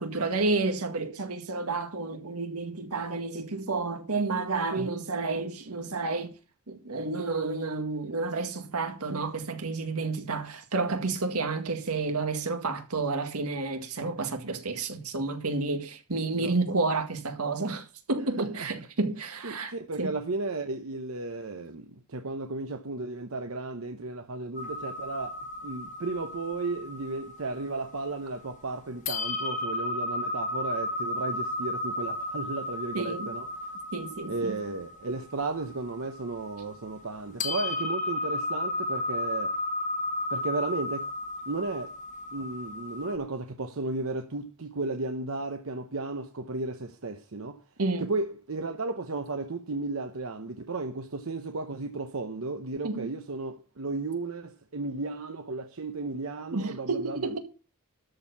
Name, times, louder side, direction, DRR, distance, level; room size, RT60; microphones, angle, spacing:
voice 1, 0.0-6.3 6.7-19.7 20.0-20.1 32.9-33.3 33.9-34.6 47.8-48.1 52.8-53.1 56.5-57.4, right 3 dB, 85° right, 1.9 m, -30 dB
voice 2, 18.4-18.7 19.4-33.5 34.3-39.6 40.3-41.1 41.5-41.9 42.3-47.6 48.0-57.4, right 3 dB, 65° right, 0.9 m, -34 dB
sound 1, 24.6-28.6 29.0-37.1 37.4-43.2, left 2 dB, 35° left, 1.3 m, -34 dB
13.0 x 4.6 x 8.2 m
head